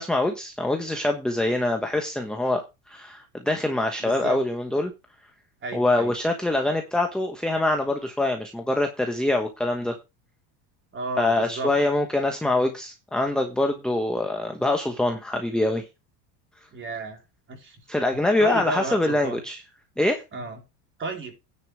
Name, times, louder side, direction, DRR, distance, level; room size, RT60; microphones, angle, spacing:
voice 1, 0.0-4.9 5.7-9.9 11.2-15.8 17.9-19.6 20.0-20.2, left 2 dB, ahead, 4 dB, 1.1 m, -24 dB
voice 2, 4.0-4.4 5.6-6.1 10.9-11.7 16.7-17.2 17.5-17.8 18.4-19.4 20.3-20.6 21.0-21.3, right 3 dB, 25° right, 2 dB, 3.7 m, -32 dB
10.0 x 5.3 x 6.1 m, 0.26 s
supercardioid pair, 135°, 47 cm